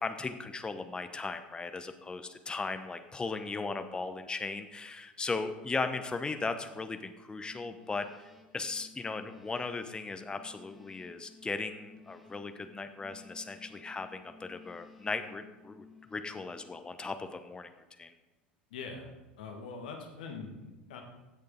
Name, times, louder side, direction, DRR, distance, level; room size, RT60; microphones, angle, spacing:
voice 1, 0.0-8.1 8.5-15.8 16.1-17.7 18.0-18.1, left 3 dB, 15° left, 9 dB, 0.8 m, -37 dB
sound 1, 7.3-17.2, left 4 dB, ahead, 1.5 m, -57 dB
voice 2, 18.7-19.1 19.4-21.0, left 4 dB, 65° left, 3 dB, 1.7 m, -43 dB
16.0 x 6.7 x 3.8 m, 1.1 s
figure-of-eight pair, 75°, 5 cm